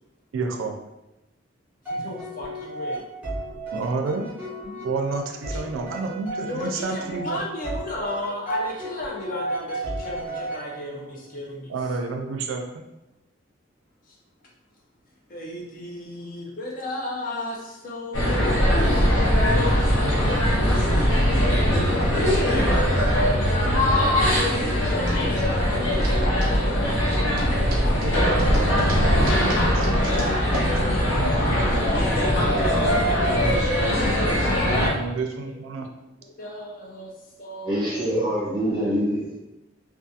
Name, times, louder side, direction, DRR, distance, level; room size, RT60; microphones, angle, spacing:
voice 1, 0.3-0.8 3.7-4.3 4.8-7.4 11.7-12.6 28.0-32.0 33.3-34.1 34.6-35.9, right 3 dB, 85° right, 3 dB, 0.3 m, -30 dB
sound 1, 1.8-11.1, right 1 dB, 10° right, 0.8 m, -34 dB
voice 2, 1.9-3.0 4.6-4.8 6.4-11.7 14.1-14.2 15.3-19.8 23.8-27.9 35.0-35.5 36.4-37.1 37.4-38.0, left 2 dB, 45° left, -2 dB, 0.5 m, -34 dB
sound 2, 18.1-34.9, equal, 85° left, 0.7 m, -21 dB
sound 3, 24.9-32.0, right 1 dB, 45° right, 0.6 m, -38 dB
voice 3, 37.6-39.4, equal, 25° right, -7 dB, 1.1 m, -25 dB
2.4 x 2.3 x 2.7 m, 0.95 s
head